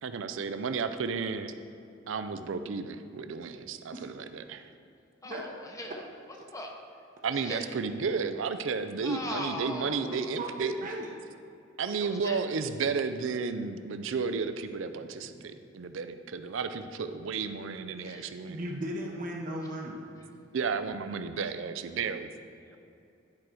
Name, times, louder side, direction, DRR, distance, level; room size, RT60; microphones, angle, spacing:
voice 1, 0.0-1.5 2.1-4.7 7.2-10.7 11.8-18.6 20.5-22.3, right 5 dB, 75° right, 10 dB, 0.5 m, -33 dB
voice 2, 3.9-4.3 5.2-5.4 10.4-11.1 18.5-20.0, right 1 dB, 45° right, 0 dB, 0.8 m, -36 dB
voice 3, 5.2-6.0 6.5-6.7 7.3-7.7 9.0-10.3 11.8-12.4 15.3-15.5 18.0-18.3, left 1 dB, 15° left, 1 dB, 0.8 m, -40 dB
10.5 x 4.8 x 4.4 m, 2.6 s
head